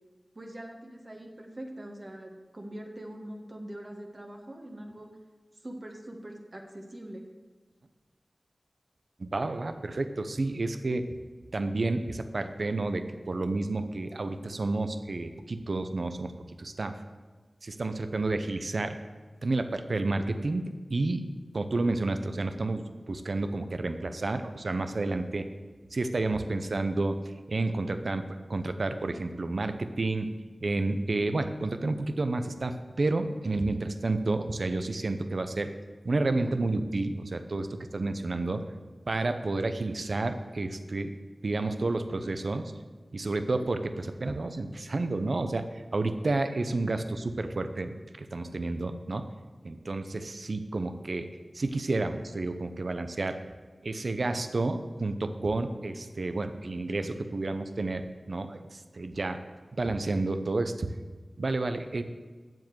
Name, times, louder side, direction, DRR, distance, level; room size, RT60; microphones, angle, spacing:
voice 1, 0.3-5.1 5.6-7.2, right 1 dB, 40° right, 1 dB, 1.5 m, -43 dB
voice 2, 9.2-11.0 11.5-16.3 16.6-17.0 17.6-19.0 19.4-21.2 21.5-25.5 25.9-27.2 27.5-30.4 30.6-35.7 36.0-38.6 39.1-41.1 41.4-42.7 43.1-49.2 49.6-51.3 51.5-53.4 53.8-59.4 59.8-60.9 61.4-62.0, right 2 dB, 70° right, 9 dB, 0.8 m, -30 dB
7.6 x 7.5 x 7.8 m, 1.4 s
wide cardioid pair, 50°, 0 cm